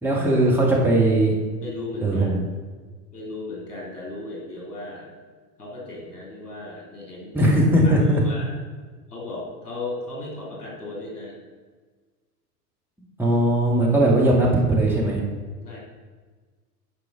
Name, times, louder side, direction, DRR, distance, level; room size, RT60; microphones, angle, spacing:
voice 1, 0.0-1.3 2.0-2.5 7.3-8.2 13.2-15.2, right 1 dB, 5° right, -4 dB, 2.2 m, -19 dB
voice 2, 1.6-2.3 3.1-5.1 5.6-7.5 7.8-8.5 9.1-11.4 15.6-15.8, left 2 dB, 75° left, -2 dB, 3.2 m, -36 dB
11.0 x 4.8 x 6.1 m, 1.4 s
figure-of-eight pair, 85°, 47 cm